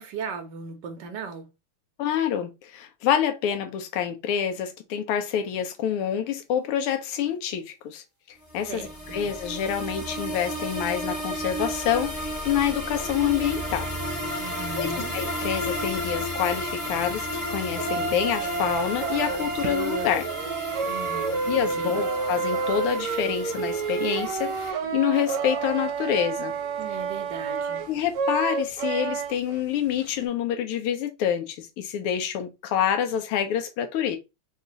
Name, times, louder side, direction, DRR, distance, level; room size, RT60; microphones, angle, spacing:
voice 1, 0.0-1.5 8.7-9.2 14.4-15.2 20.8-21.5 21.8-22.0 26.8-27.8, right 5 dB, 60° right, 1.3 m, -37 dB
voice 2, 2.0-8.0 8.5-13.9 14.2-14.4 14.8-20.3 21.5-26.5 27.9-34.2, left 9 dB, 85° left, 1.6 m, -27 dB
sound 1, 8.5-24.7, equal, 20° left, 1.0 m, -33 dB
sound 2, 17.8-29.6 29.9-30.3, right 5 dB, 80° right, 1.5 m, -29 dB
4.1 x 2.3 x 3.8 m
omnidirectional pair, 2.4 m